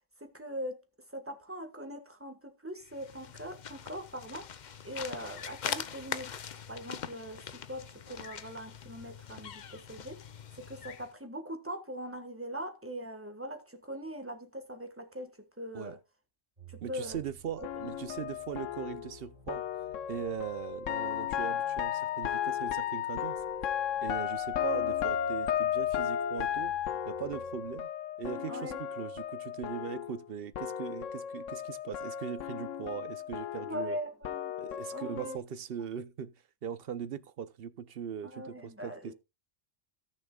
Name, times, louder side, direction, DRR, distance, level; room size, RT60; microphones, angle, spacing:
voice 1, 0.2-0.8 1.1-4.5 4.8-6.3 6.7-10.2 10.6-16.0 16.7-17.2 28.5-28.8 33.7-34.5 34.9-35.4 38.2-39.1, equal, 10° right, 1.6 m, -41 dB
sound 1, 2.8-11.1, left 7 dB, 45° left, 0.6 m, -42 dB
sound 2, 16.6-27.7, right 4 dB, 35° right, 2.7 m, -56 dB
voice 2, 16.8-19.6 20.1-23.4 24.0-26.7 27.1-27.9 28.2-34.0 34.6-36.3 36.6-39.1, right 8 dB, 55° right, 0.9 m, -40 dB
sound 3, 17.6-30.3 30.5-35.4, left 10 dB, 85° left, 1.1 m, -34 dB
17.5 x 6.6 x 2.3 m
omnidirectional pair, 1.3 m